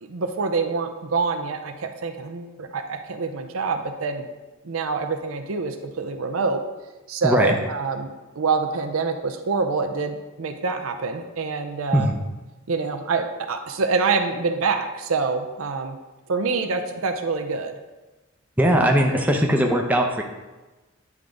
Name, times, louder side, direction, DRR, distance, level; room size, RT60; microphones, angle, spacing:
voice 1, 0.0-4.3 4.6-6.6 7.1-12.1 12.7-16.0 16.3-17.7, right 4 dB, 75° right, 5 dB, 0.6 m, -26 dB
voice 2, 7.2-7.6 11.9-12.1 18.6-20.2, equal, 10° right, 1 dB, 0.6 m, -19 dB
9.4 x 3.6 x 3.8 m, 1.2 s
head